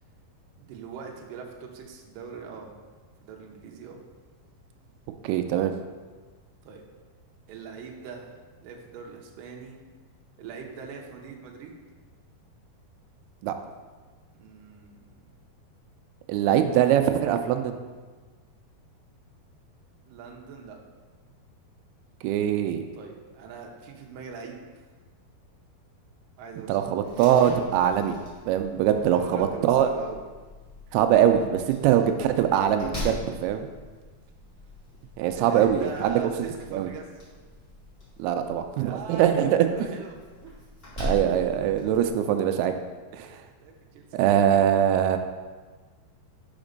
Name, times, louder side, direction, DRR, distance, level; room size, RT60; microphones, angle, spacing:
voice 1, 0.6-2.7 3.2-4.1 6.6-6.8 7.5-8.3 8.6-9.8 10.4-11.7 14.3-15.3 20.1-20.8 22.9-24.6 26.4-26.9 29.0-30.2 35.3-37.1 37.4-37.5 38.8-40.5 43.6-44.7, right 5 dB, 75° right, 0 dB, 2.2 m, -41 dB
voice 2, 5.2-5.7 13.4-13.6 16.3-17.8 22.2-22.8 26.7-28.1 28.5-29.9 30.9-33.7 35.2-36.1 36.7-36.9 38.2-40.0 41.0-42.7 43.1-43.4 44.1-45.2, right 10 dB, 90° right, 7 dB, 2.5 m, -22 dB
Slam, 27.0-42.1, left 1 dB, 25° left, 1.3 m, -41 dB
5.8 x 5.2 x 5.1 m, 1.4 s
omnidirectional pair, 4.4 m